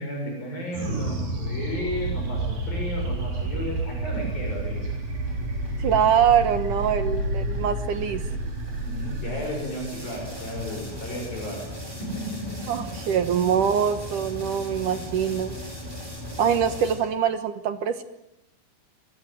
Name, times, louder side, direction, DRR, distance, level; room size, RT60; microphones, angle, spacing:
voice 1, 0.0-4.9 8.8-11.6 12.0-12.8, equal, 55° left, 1 dB, 8.5 m, -33 dB
sound 1, 0.7-11.4, right 2 dB, 50° right, 5.5 m, -30 dB
sound 2, 1.9-17.0, equal, 10° right, 7.5 m, -39 dB
sound 3, 4.2-16.7, right 1 dB, 85° right, 8.4 m, -47 dB
voice 2, 5.8-8.2 12.7-15.6 16.4-18.0, right 8 dB, 65° right, 11 dB, 2.2 m, -23 dB
24.5 x 24.0 x 9.4 m, 0.85 s
omnidirectional pair, 4.9 m